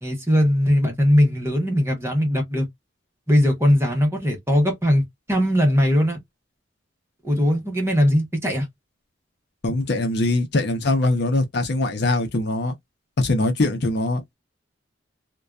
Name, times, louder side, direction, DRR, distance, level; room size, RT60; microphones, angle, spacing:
voice 1, 0.0-2.7 3.3-6.2 7.2-8.7, equal, 15° right, 0.9 m, -20 dB
voice 2, 9.6-12.7 13.2-14.2, left 2 dB, 60° left, 0.7 m, -22 dB
2.5 x 2.2 x 2.2 m
head